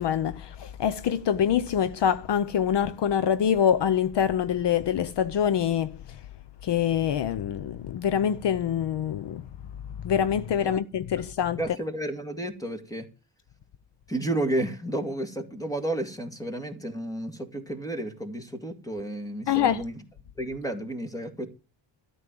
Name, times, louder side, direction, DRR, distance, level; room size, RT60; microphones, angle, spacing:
voice 1, 0.0-6.0 6.6-9.4 10.0-11.6 19.5-19.8, left 9 dB, 60° left, 0.7 m, -25 dB
voice 2, 11.6-13.1 14.1-20.0 20.4-21.5, right 1 dB, 5° left, 2.1 m, -32 dB
13.0 x 5.5 x 9.1 m
wide cardioid pair, 150°, 46 cm